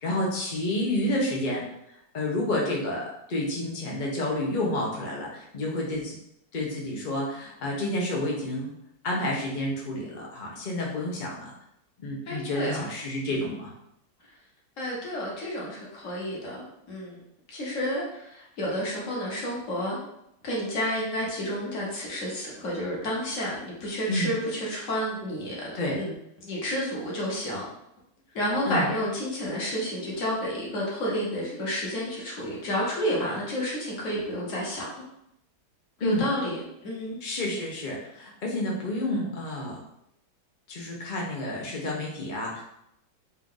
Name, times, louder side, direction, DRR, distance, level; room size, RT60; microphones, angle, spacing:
voice 1, 0.0-1.6 2.1-6.1 6.5-8.7 9.0-11.5 12.0-13.7 24.1-24.3 25.7-26.0 28.7-28.9 36.0-36.3 37.2-39.8 40.7-42.6, left 1 dB, 85° left, -3 dB, 0.4 m, -29 dB
voice 2, 12.3-12.9 14.8-17.2 17.5-20.0 20.4-26.1 26.4-27.6 28.3-34.9 36.0-37.2, equal, 45° left, -4 dB, 1.3 m, -30 dB
4.3 x 2.5 x 3.8 m, 0.78 s
omnidirectional pair, 2.2 m